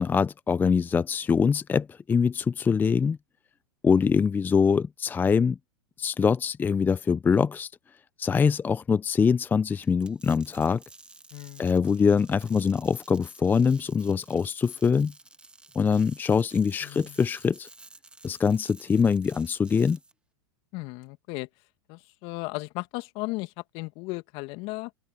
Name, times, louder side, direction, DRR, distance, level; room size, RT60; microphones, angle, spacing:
voice 1, 0.0-3.2 3.8-5.6 6.0-7.7 8.2-10.8 11.6-15.1 15.8-17.7 18.2-20.0, left 6 dB, 15° left, 0.5 m, -23 dB
sound 1, 9.8-20.1, right 2 dB, 10° right, 1.5 m, -52 dB
voice 2, 11.3-11.7 16.8-17.2 20.7-21.5 21.9-24.9, left 24 dB, 50° left, 2.3 m, -36 dB
open air
hypercardioid pair, 105°, 13 cm